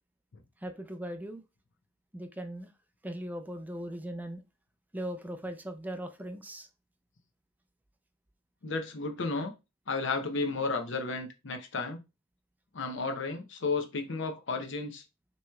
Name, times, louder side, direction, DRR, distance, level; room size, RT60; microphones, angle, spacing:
voice 1, 0.6-1.4 2.1-2.7 3.0-4.4 4.9-6.7, right 1 dB, 10° right, 0.4 m, -39 dB
voice 2, 8.6-9.5 9.9-12.0 12.7-15.0, left 3 dB, 70° left, 0.8 m, -33 dB
6.0 x 3.0 x 2.3 m
head